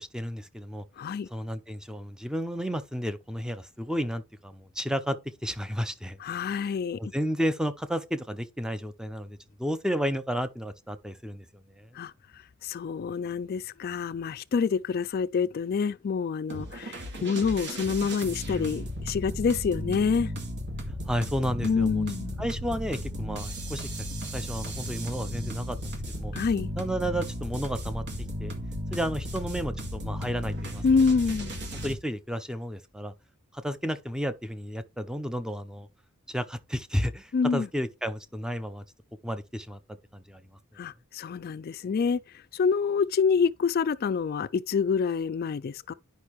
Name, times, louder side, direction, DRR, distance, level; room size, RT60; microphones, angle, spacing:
voice 1, 0.0-0.8 1.3-5.2 5.4-6.2 7.0-11.9 21.1-22.1 22.4-23.9 24.3-26.3 26.8-28.0 28.4-28.5 28.9-30.8 31.8-33.1 33.5-35.9 36.3-38.8 39.2-39.8 40.1-40.4, equal, 5° right, 0.6 m, -32 dB
voice 2, 1.0-1.3 6.2-7.0 12.0-12.1 12.6-20.3 21.6-22.4 26.3-26.7 30.8-31.6 37.3-37.7 40.8-42.2 42.5-45.9, left 5 dB, 45° left, 0.3 m, -27 dB
sound 1, 16.5-32.0, equal, 55° right, 1.9 m, -35 dB
10.5 x 5.4 x 3.1 m
head